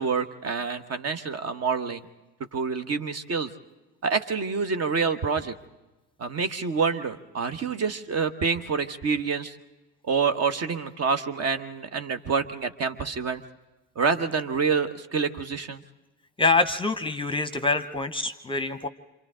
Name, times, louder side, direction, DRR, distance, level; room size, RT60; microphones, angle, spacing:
voice 1, 0.0-2.0 2.5-3.5 4.0-5.5 6.2-9.6 10.0-13.4 13.9-15.8, right 5 dB, 40° right, 10 dB, 1.2 m, -27 dB
voice 2, 16.4-18.9, left 3 dB, 15° left, 11 dB, 0.9 m, -25 dB
28.0 x 26.5 x 3.8 m, 1.1 s
figure-of-eight pair, 55°, 40 cm